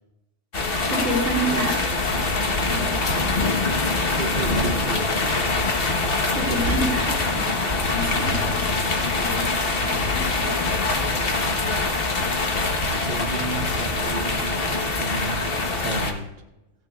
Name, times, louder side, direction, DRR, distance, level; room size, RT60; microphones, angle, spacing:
sound 1, 0.5-16.1, left 3 dB, 50° left, 1.4 m, -24 dB
voice 1, 0.9-1.8 2.6-3.4 6.3-8.7 9.2-11.3, right 1 dB, 80° right, -1 dB, 2.6 m, -30 dB
voice 2, 4.2-5.5 12.9-14.7 15.0-15.4 15.8-16.3, right 4 dB, 45° right, 3 dB, 1.1 m, -33 dB
15.5 x 14.5 x 2.4 m, 0.96 s
omnidirectional pair, 1.2 m